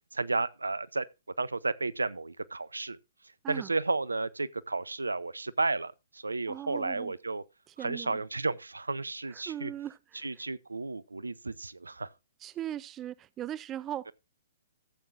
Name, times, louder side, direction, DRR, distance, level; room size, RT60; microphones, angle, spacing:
voice 1, 0.1-1.1 1.4-3.0 3.2-7.4 7.8-9.7 10.1-12.1 14.1-14.2, right 3 dB, 80° right, 0.6 m, -33 dB
voice 2, 6.5-7.1 7.8-8.2 9.5-10.3 12.4-14.1, right 11 dB, 20° right, 0.4 m, -39 dB
15.0 x 7.8 x 2.5 m
figure-of-eight pair, 120°, 0 cm